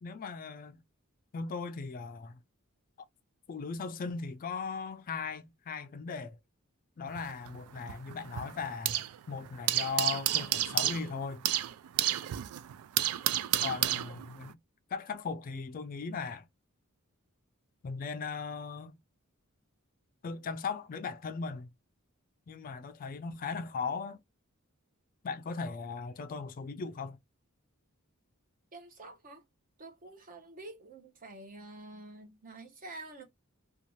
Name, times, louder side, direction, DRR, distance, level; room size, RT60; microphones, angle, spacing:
voice 1, 0.0-0.8 1.3-2.4 3.5-6.4 7.0-11.4 13.6-14.6 14.9-16.5 17.8-19.0 20.2-21.7 22.5-24.2 25.2-27.2, left 5 dB, 40° left, 0.3 m, -38 dB
sound 1, 7.1-9.2 9.5-14.5, right 13 dB, 85° right, 0.3 m, -31 dB
voice 2, 28.7-29.4 29.8-33.2, right 2 dB, 40° right, 0.8 m, -48 dB
2.6 x 2.3 x 2.9 m
head